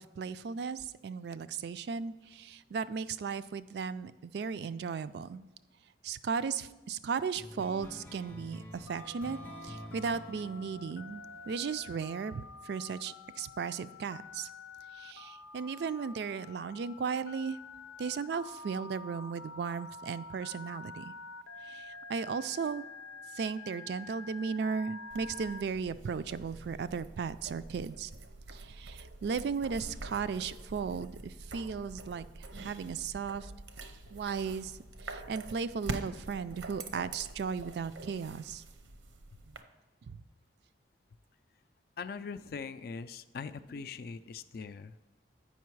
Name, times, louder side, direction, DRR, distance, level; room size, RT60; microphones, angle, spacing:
voice 1, 0.0-5.4 6.0-14.5 14.9-17.6 18.0-21.1 21.6-22.9 23.3-28.1 28.5-33.5 34.1-38.6 40.1-40.2, right 5 dB, 60° right, 14 dB, 0.3 m, -36 dB
sound 1, 7.4-12.3, left 1 dB, 10° left, 0.6 m, -49 dB
Telephone, 8.9-25.6, left 3 dB, 85° left, 0.7 m, -48 dB
sound 2, 25.1-39.6, right 2 dB, 80° right, 0.7 m, -46 dB
voice 2, 42.0-44.9, left 5 dB, 50° left, 14 dB, 0.3 m, -41 dB
8.4 x 5.5 x 4.6 m, 1.1 s
head